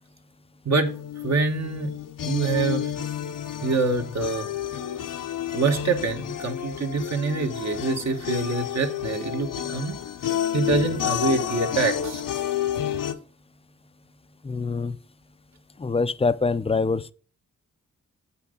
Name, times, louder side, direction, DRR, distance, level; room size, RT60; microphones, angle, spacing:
sound 1, 0.8-13.1, left 10 dB, 75° left, 0.8 m, -30 dB
voice 1, 1.2-1.9 2.2-2.9 3.6-4.5 5.5-10.0 10.5-12.2, right 4 dB, 55° right, 1.2 m, -25 dB
voice 2, 14.4-15.0 15.8-17.1, left 4 dB, 20° left, 0.4 m, -24 dB
7.9 x 5.7 x 3.7 m
cardioid pair, 85°, 32 cm